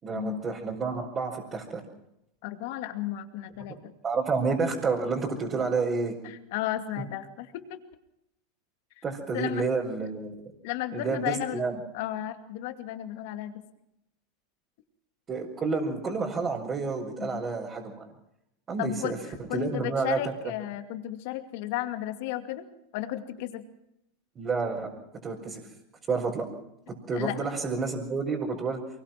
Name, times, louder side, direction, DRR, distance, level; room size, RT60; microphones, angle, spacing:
voice 1, 0.0-1.8 4.0-6.1 9.0-10.3 10.9-11.8 15.3-18.1 18.7-19.2 19.5-20.2 24.4-24.9 25.2-25.6 26.1-26.5 27.1-28.8, right 4 dB, 30° right, -4 dB, 5.3 m, -29 dB
voice 2, 2.4-3.9 6.2-7.8 9.0-9.1 9.3-9.6 10.6-11.6 11.9-13.5 17.2-17.4 18.8-19.1 19.5-22.6 22.9-23.6 27.1-27.4, left 13 dB, 65° left, 8 dB, 2.4 m, -33 dB
24.0 x 21.0 x 6.1 m, 0.82 s
hypercardioid pair, 115°, 0 cm